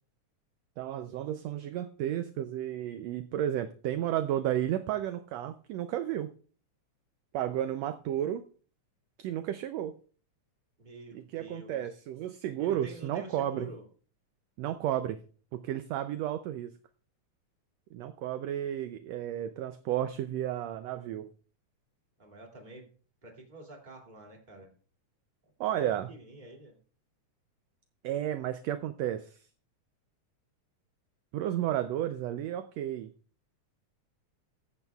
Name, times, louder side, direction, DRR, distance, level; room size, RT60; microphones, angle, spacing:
voice 1, 0.8-6.3 7.3-8.4 9.2-9.9 11.1-13.7 14.6-15.2 15.5-16.7 17.9-21.3 25.6-26.1 28.0-29.4 31.3-33.1, right 11 dB, 75° right, 10 dB, 1.7 m, -32 dB
voice 2, 10.8-11.9 12.6-13.9 22.2-22.8 23.2-24.7 26.1-26.8, right 2 dB, 15° right, 1 dB, 2.3 m, -47 dB
15.5 x 14.0 x 2.3 m, 0.42 s
omnidirectional pair, 3.3 m